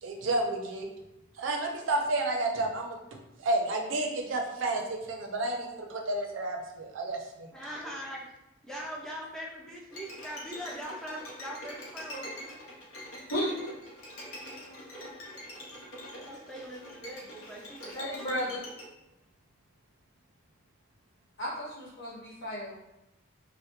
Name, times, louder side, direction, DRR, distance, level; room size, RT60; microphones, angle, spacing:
voice 1, 0.0-0.9 1.4-3.0 3.4-7.5, right 2 dB, 70° right, 2 dB, 0.4 m, -31 dB
voice 2, 7.5-8.3 8.7-12.6 14.9-15.1 16.1-18.6, equal, 5° left, -4 dB, 0.4 m, -42 dB
Bowed string instrument, 9.9-18.9, left 1 dB, 85° left, 0.7 m, -44 dB
voice 3, 13.3-13.7 17.9-18.6 21.4-22.7, equal, 60° left, -7 dB, 1.1 m, -33 dB
2.2 x 2.1 x 2.9 m, 0.95 s
head